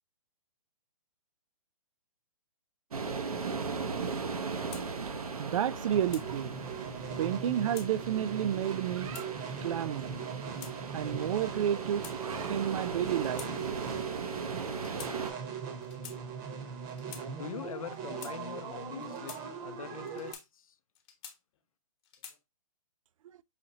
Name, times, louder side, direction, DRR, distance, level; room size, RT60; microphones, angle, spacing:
sound 1, 2.9-15.3, right 4 dB, 85° right, 0.9 m, -38 dB
sound 2, 4.7-4.9 5.7-6.3 7.3-7.9 8.7-9.3 10.1-10.7 11.6-12.5 13.2-13.5 13.8-14.0 14.8-15.1 15.8-16.2 16.9-17.3 17.9-18.4 19.0-19.4 20.1-20.5 20.9-21.6 22.0-22.4, left 8 dB, 45° left, 1.1 m, -48 dB
voice 1, 5.4-6.6 7.2-9.3 9.6-10.2 10.9-13.5, right 10 dB, 65° right, 0.4 m, -31 dB
sound 3, 5.9-20.3, right 7 dB, 30° right, 0.9 m, -40 dB
voice 2, 17.2-19.3 19.6-20.8, left 8 dB, 70° left, 0.5 m, -43 dB
5.7 x 2.8 x 2.7 m
hypercardioid pair, 135°, 18 cm